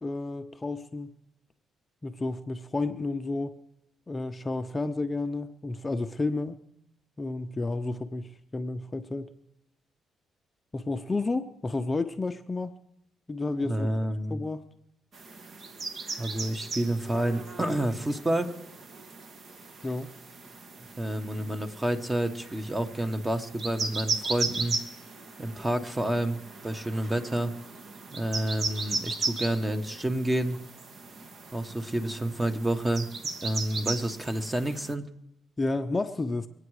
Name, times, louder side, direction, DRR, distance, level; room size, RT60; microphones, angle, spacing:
voice 1, 0.0-1.1 2.0-3.6 4.1-6.6 7.2-9.3 10.7-12.8 13.3-13.9 14.3-14.7 19.8-20.1 35.6-36.5, left 2 dB, 25° left, 8 dB, 0.6 m, -31 dB
voice 2, 13.7-14.4 16.2-18.5 21.0-24.8 25.4-26.4 26.6-27.5 28.1-30.6 31.5-33.1 33.4-35.0, right 1 dB, 15° right, 8 dB, 1.2 m, -29 dB
sound 1, 15.1-34.9, right 3 dB, 50° right, 1.4 m, -37 dB
23.5 x 8.9 x 4.9 m, 0.83 s
cardioid pair, 90°, 0 cm